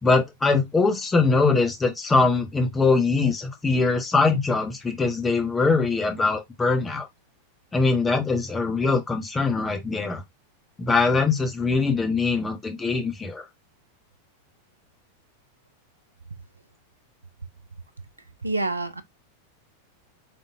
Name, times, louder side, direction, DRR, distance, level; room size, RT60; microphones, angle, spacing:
voice 1, 0.0-7.1 7.7-10.2 10.8-13.4, left 4 dB, 15° left, 1.1 m, -22 dB
voice 2, 18.4-19.0, right 2 dB, 80° right, 0.5 m, -27 dB
4.2 x 3.5 x 2.5 m
figure-of-eight pair, 90°, 0 cm